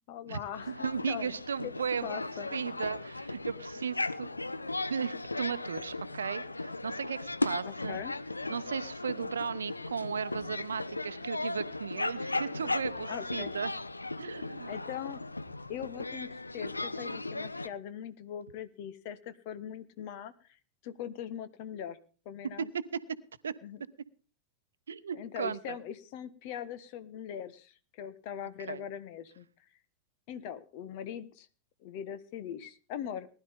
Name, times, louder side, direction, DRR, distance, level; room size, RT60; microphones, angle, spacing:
voice 1, 0.1-1.7 2.0-2.5 7.6-8.2 13.1-13.5 14.7-15.2 15.7-20.3 20.8-22.7 23.6-23.8 25.1-29.5 30.3-31.5 31.8-33.3, left 9 dB, 45° left, 13 dB, 1.3 m, -41 dB
sound 1, 0.5-17.7, left 2 dB, 80° left, 0.6 m, -37 dB
voice 2, 0.8-2.1 2.5-4.3 4.9-8.0 8.5-13.7 14.2-14.7 23.4-23.5 24.9-25.8 28.7-28.8, right 6 dB, 70° right, 15 dB, 0.8 m, -36 dB
19.5 x 11.5 x 3.6 m, 0.36 s
figure-of-eight pair, 90°, 0 cm